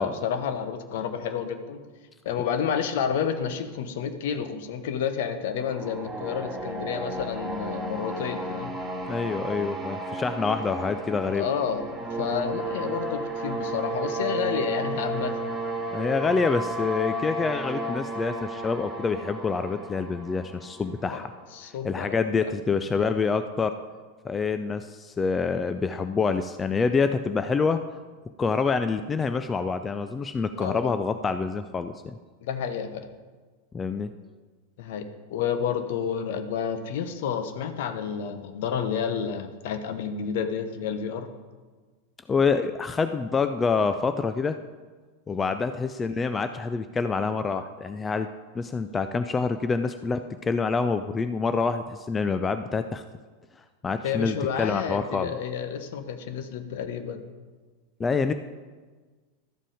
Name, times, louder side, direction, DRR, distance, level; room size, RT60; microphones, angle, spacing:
voice 1, 0.0-1.8 2.2-8.7 11.3-11.8 12.1-15.5 21.0-22.5 30.6-30.9 32.4-33.1 34.8-41.3 45.7-45.8 54.0-57.3, left 7 dB, 55° left, 9 dB, 0.9 m, -30 dB
sound 1, 5.6-21.4, right 2 dB, 5° right, 2.3 m, -33 dB
voice 2, 9.1-11.4 15.9-21.3 21.8-23.8 24.2-27.8 28.4-32.2 33.7-34.1 42.3-44.6 45.3-48.3 48.5-53.0 53.8-55.4 58.0-58.3, left 4 dB, 20° left, 10 dB, 0.4 m, -26 dB
12.5 x 7.4 x 5.0 m, 1.4 s
figure-of-eight pair, 85°, 0 cm